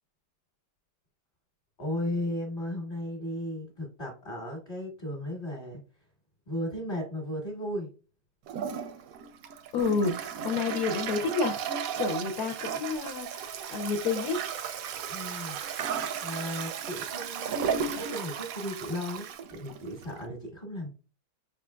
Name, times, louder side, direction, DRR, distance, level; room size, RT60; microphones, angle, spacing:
voice 1, 1.8-5.8 6.5-7.9 15.1-15.6 16.2-20.9, left 1 dB, 35° left, -1 dB, 1.2 m, -35 dB
Toilet flush, 8.5-20.3, right 7 dB, 70° right, 0.9 m, -35 dB
voice 2, 9.7-11.6 12.0-14.4, left 4 dB, 65° left, 3 dB, 1.1 m, -29 dB
5.1 x 3.7 x 2.2 m, 0.34 s
omnidirectional pair, 1.8 m